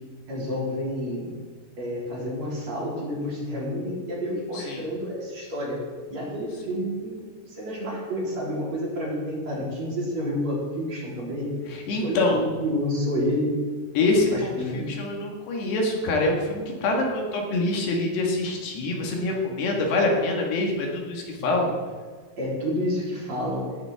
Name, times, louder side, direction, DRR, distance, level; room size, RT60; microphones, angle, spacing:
voice 1, 0.3-1.3 1.8-5.8 6.1-11.5 11.9-13.6 14.3-14.9 21.4-21.5 22.4-23.7, equal, 40° right, -6 dB, 4.4 m, -29 dB
voice 2, 4.5-4.8 11.7-12.5 14.0-21.7, left 2 dB, 75° left, 0 dB, 3.8 m, -25 dB
19.0 x 11.0 x 3.6 m, 1.5 s
omnidirectional pair, 4.9 m